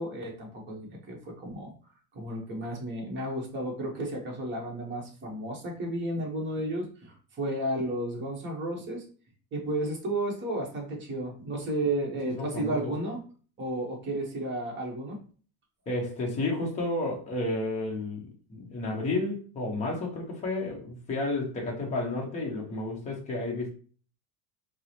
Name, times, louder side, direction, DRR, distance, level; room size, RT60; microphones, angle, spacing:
voice 1, 0.0-1.7 2.1-9.0 9.5-13.2 13.6-15.2, right 1 dB, 25° right, 0.9 m, -33 dB
voice 2, 12.4-12.9 15.9-23.7, left 2 dB, 15° left, 0.6 m, -31 dB
4.5 x 2.0 x 2.7 m
supercardioid pair, 145°, 50 cm